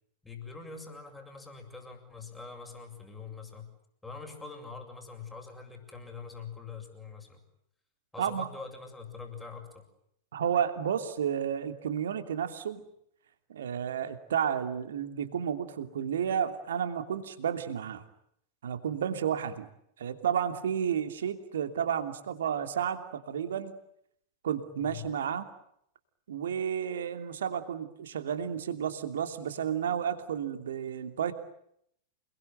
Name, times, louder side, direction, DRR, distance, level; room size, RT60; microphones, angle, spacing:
voice 1, 0.2-3.7 4.0-7.4 8.1-9.8 24.8-25.1, left 4 dB, 10° left, 4 dB, 7.3 m, -44 dB
voice 2, 8.2-8.5 10.3-12.8 13.5-18.0 18.6-19.7 20.0-23.8 24.4-25.5 26.3-31.3, right 8 dB, 65° right, 8 dB, 2.8 m, -31 dB
29.0 x 21.5 x 9.2 m, 0.73 s
figure-of-eight pair, 90°, 0 cm